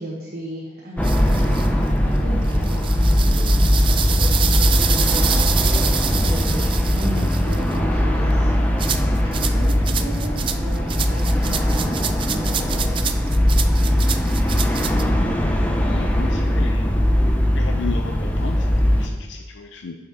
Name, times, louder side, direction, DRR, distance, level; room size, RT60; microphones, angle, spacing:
voice 1, 0.0-1.3 2.0-4.1 4.4-5.8 6.1-9.0 9.3-12.9, right 1 dB, 55° right, -5 dB, 1.5 m, -36 dB
sound 1, 1.0-19.1, equal, 10° left, 0.7 m, -19 dB
sound 2, 1.0-1.7 2.5-7.8 8.8-15.0, right 9 dB, 30° right, 0.3 m, -27 dB
voice 2, 15.8-16.8 17.5-20.0, left 4 dB, 85° left, 4 dB, 0.6 m, -34 dB
6.5 x 5.9 x 4.8 m, 1.4 s
head